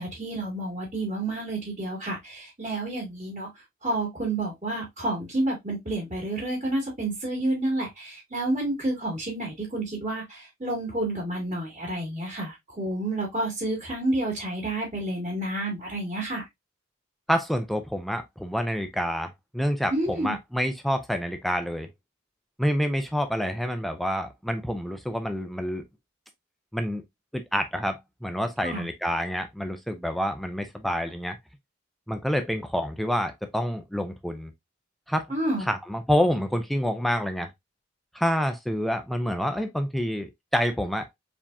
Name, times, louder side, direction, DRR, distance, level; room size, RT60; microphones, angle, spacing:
voice 1, 0.0-3.5 3.8-16.4 19.9-20.3 28.6-28.9 35.3-35.6, right 1 dB, 35° right, 2.4 m, -29 dB
voice 2, 17.3-21.9 22.6-25.8 26.7-27.0 27.3-31.4 32.1-34.5 35.1-35.3 35.7-37.5 38.1-41.2, equal, ahead, 0.5 m, -28 dB
4.9 x 3.6 x 2.6 m
head